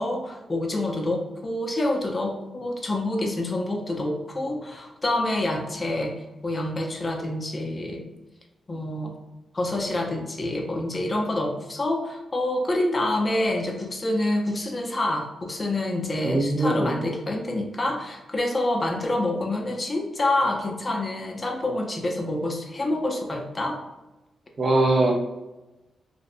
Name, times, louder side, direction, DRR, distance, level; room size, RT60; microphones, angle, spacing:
voice 1, 0.0-6.1 6.4-8.0 8.7-9.2 9.5-23.8, left 1 dB, 30° left, 1 dB, 0.5 m, -27 dB
voice 2, 16.2-17.0 24.6-25.1, right 2 dB, 45° right, 2 dB, 0.4 m, -21 dB
2.6 x 2.0 x 2.5 m, 1.0 s
cardioid pair, 70°, 0 cm